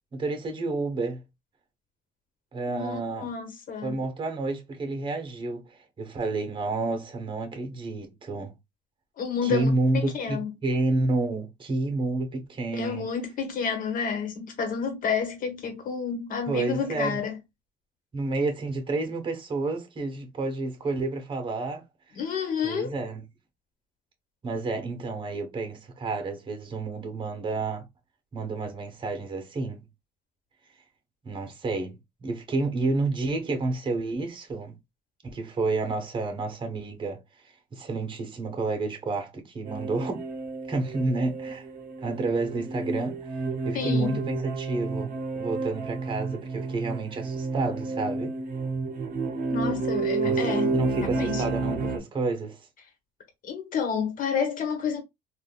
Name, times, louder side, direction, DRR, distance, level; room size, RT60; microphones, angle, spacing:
voice 1, 0.1-1.2 2.5-3.3 3.8-8.5 9.4-13.1 16.5-17.2 18.1-21.8 22.6-23.2 24.4-27.9 28.3-29.8 31.2-34.8 35.2-37.2 37.7-40.2 40.7-41.7 42.0-48.3 50.2-52.6, right 2 dB, 30° right, 1.1 m, -30 dB
voice 2, 2.7-4.0 9.2-10.5 12.7-17.4 22.1-23.0 43.7-44.2 49.5-50.7 51.1-51.4 53.4-55.0, left 6 dB, 55° left, 1.3 m, -30 dB
sound 1, 39.6-52.0, right 3 dB, 55° right, 0.8 m, -31 dB
3.6 x 2.5 x 2.3 m
cardioid pair, 110°, 17 cm